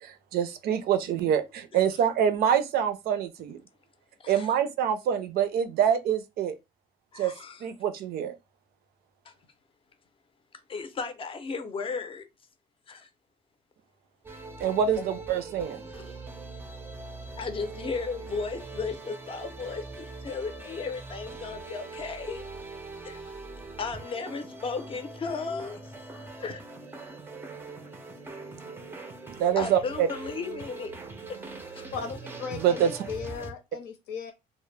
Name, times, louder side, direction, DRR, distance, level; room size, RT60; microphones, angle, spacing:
voice 1, 0.0-3.6 4.3-6.5 7.2-7.3 7.6-8.3 14.6-15.8 29.4-30.1 32.5-32.9, right 9 dB, 70° right, 0.5 m, -25 dB
voice 2, 4.2-4.5 7.1-7.7 9.2-9.3 10.7-12.2 12.9-13.1 15.0-15.1 15.8-16.2 17.4-22.4 23.0-23.4 23.8-25.8 26.4-26.6 29.6-30.9 31.3-31.4 31.7-31.9, left 4 dB, 30° left, 0.5 m, -35 dB
sound 1, 14.2-33.5, right 3 dB, 15° right, 0.4 m, -42 dB
voice 3, 31.9-34.3, left 6 dB, 75° left, 0.7 m, -37 dB
2.0 x 2.0 x 3.2 m
cardioid pair, 110°, 17 cm